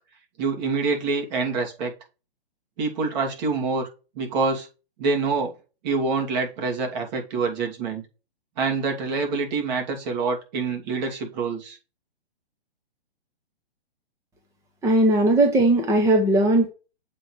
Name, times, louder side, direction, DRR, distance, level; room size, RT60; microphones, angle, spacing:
voice 1, 0.4-1.9 2.8-3.9 4.1-4.7 5.0-5.5 5.8-8.0 8.6-11.8, right 4 dB, 45° right, 1 dB, 2.9 m, -26 dB
voice 2, 14.8-16.7, right 1 dB, 10° right, 3 dB, 1.0 m, -18 dB
7.6 x 4.3 x 4.8 m, 0.31 s
hypercardioid pair, 135°, 31 cm